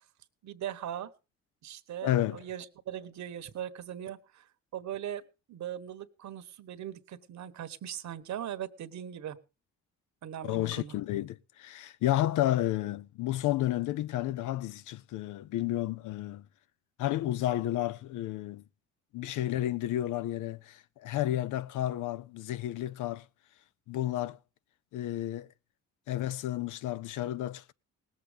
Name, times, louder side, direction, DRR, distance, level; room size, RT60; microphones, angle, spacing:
voice 1, 0.4-1.1 1.6-4.5 4.7-5.2 5.5-9.4 10.2-11.0, right 10 dB, 70° right, 1.2 m, -40 dB
voice 2, 2.0-2.4 10.4-16.4 17.0-18.6 19.1-23.2 23.9-24.4 24.9-25.5 26.1-27.7, left 14 dB, 80° left, 0.6 m, -31 dB
18.5 x 7.6 x 5.1 m
cardioid pair, 90°, 30 cm